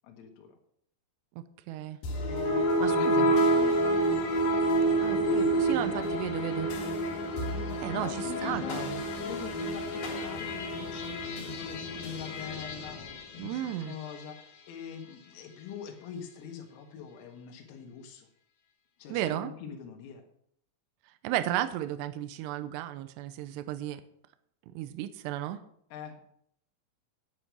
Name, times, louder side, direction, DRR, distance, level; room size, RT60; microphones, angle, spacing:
voice 1, 0.0-0.6 2.8-4.0 7.9-8.9 9.2-18.3 19.0-20.2 25.9-26.3, left 7 dB, 85° left, 3 dB, 4.3 m, -43 dB
voice 2, 1.7-2.0 2.8-3.4 5.0-6.7 7.8-9.0 13.4-14.0 19.1-19.5 21.2-24.0 24.7-25.6, right 13 dB, 85° right, 11 dB, 2.4 m, -34 dB
sound 1, 2.0-14.4, right 1 dB, 55° left, 3.1 m, -29 dB
10.0 x 9.9 x 6.2 m, 0.69 s
omnidirectional pair, 5.9 m